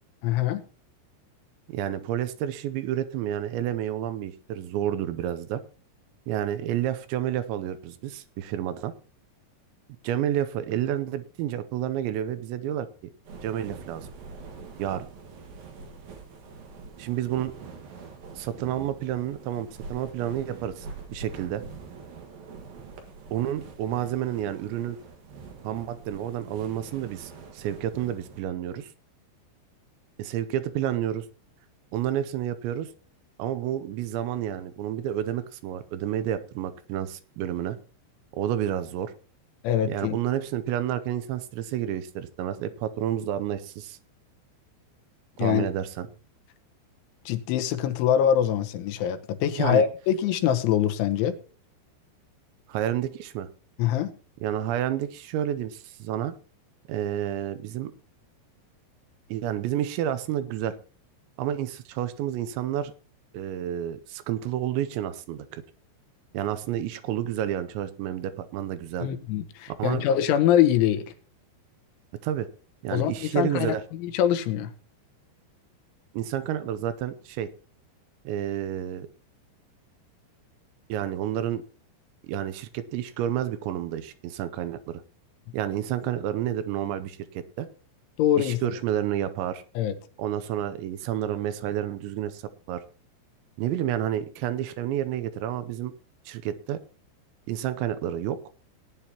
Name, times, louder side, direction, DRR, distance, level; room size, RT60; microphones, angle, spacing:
voice 1, 0.2-0.6 39.6-40.2 45.4-45.7 47.3-51.4 53.8-54.1 69.0-71.1 72.9-74.7 88.2-88.6 89.8-89.9, left 10 dB, 85° left, 7 dB, 3.3 m, -24 dB
voice 2, 1.7-5.6 6.3-8.9 10.0-12.9 13.4-14.1 14.8-15.1 17.0-17.6 18.3-21.6 23.3-25.0 25.6-28.9 30.2-31.3 31.9-32.9 33.4-37.8 38.3-39.1 39.9-44.0 45.4-46.1 49.6-49.8 52.7-53.5 54.4-56.4 56.9-57.9 59.3-60.7 61.4-62.9 63.3-65.6 66.3-69.1 69.8-70.1 72.2-72.5 72.8-73.8 76.1-77.5 78.3-79.1 80.9-81.6 82.3-85.0 85.5-87.7 88.4-89.6 90.2-92.4 92.7-92.8 93.6-95.9 96.3-96.8 97.5-98.4, right 11 dB, 80° right, 12 dB, 2.9 m, -30 dB
sound 1, 13.2-28.4, right 4 dB, 60° right, 3.0 m, -44 dB
18.0 x 9.8 x 2.9 m, 0.39 s
omnidirectional pair, 5.4 m